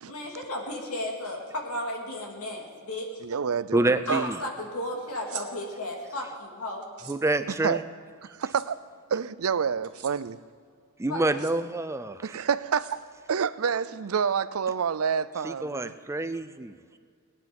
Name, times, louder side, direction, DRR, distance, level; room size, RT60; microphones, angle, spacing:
voice 1, 0.0-3.1 4.1-6.8 11.1-11.2, left 1 dB, 85° left, 0 dB, 2.7 m, -34 dB
voice 2, 3.2-4.3 7.6-7.8 8.4-8.8 9.1-10.4 12.2-13.0 13.3-15.9, right 6 dB, 70° right, 16 dB, 0.5 m, -28 dB
voice 3, 3.7-4.4 7.1-7.8 11.0-12.3 15.4-16.8, right 2 dB, 15° right, 11 dB, 0.4 m, -27 dB
sound 1, 5.1-5.5 6.8-7.2 8.4-8.7 9.8-10.1 11.2-11.5 12.7-13.3, right 12 dB, 90° right, 1.3 m, -43 dB
19.0 x 10.0 x 5.4 m, 2.2 s
head